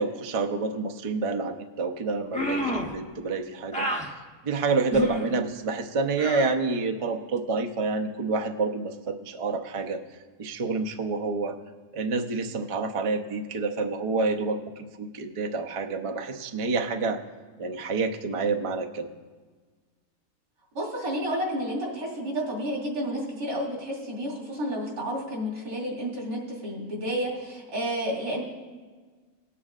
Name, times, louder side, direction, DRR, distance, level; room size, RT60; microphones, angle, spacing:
voice 1, 0.0-3.9 4.4-10.0 10.4-11.6 11.9-14.6 15.0-17.2 17.6-19.1, right 3 dB, 50° right, 3 dB, 0.4 m, -28 dB
sound 1, 2.3-3.0 3.7-4.1 4.9-5.3 6.2-6.5, equal, 10° left, 0.6 m, -29 dB
voice 2, 20.7-28.4, equal, 85° right, -4 dB, 3.1 m, -31 dB
19.5 x 8.4 x 2.4 m, 1.4 s
omnidirectional pair, 1.6 m